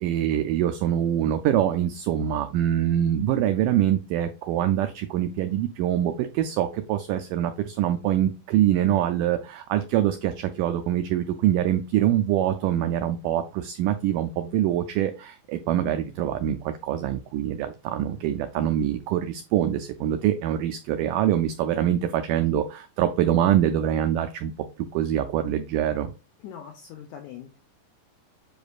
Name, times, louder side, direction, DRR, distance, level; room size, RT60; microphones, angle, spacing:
voice 1, 0.0-24.5 24.9-26.1, right 11 dB, 90° right, 8 dB, 1.8 m, -24 dB
voice 2, 26.4-27.6, left 8 dB, 85° left, 5 dB, 1.7 m, -42 dB
8.0 x 5.0 x 2.4 m, 0.32 s
omnidirectional pair, 4.3 m